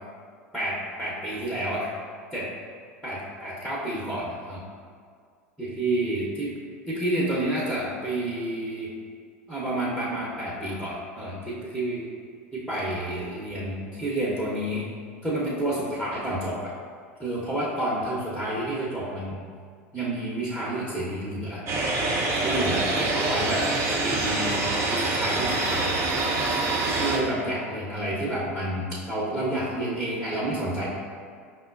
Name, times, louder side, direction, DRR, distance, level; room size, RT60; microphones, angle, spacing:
voice 1, 0.5-2.0 2.3-2.5 3.0-4.6 5.6-6.5 6.9-8.9 9.5-12.1 12.5-14.9 15.2-16.7 17.2-19.4 19.9-21.6 22.4-23.7 24.0-24.6 24.9-25.9 27.0-30.9, right 1 dB, 5° right, -8 dB, 0.8 m, -29 dB
sound 1, 21.7-27.2, right 2 dB, 35° right, 0.6 m, -25 dB
5.4 x 2.1 x 2.4 m, 2.1 s
hypercardioid pair, 85°, 8 cm